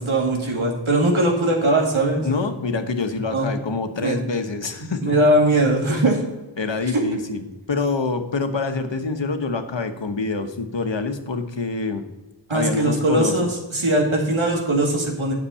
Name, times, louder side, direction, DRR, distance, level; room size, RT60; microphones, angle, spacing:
voice 1, 0.0-2.2 3.3-3.5 4.0-4.1 5.0-6.2 6.9-7.0 12.5-15.3, right 1 dB, 85° right, -1 dB, 2.4 m, -20 dB
voice 2, 2.2-5.3 5.8-6.0 6.6-12.0 12.5-13.5, left 3 dB, 65° left, 7 dB, 1.1 m, -26 dB
9.8 x 6.8 x 5.6 m, 1.1 s
wide cardioid pair, 60°, 47 cm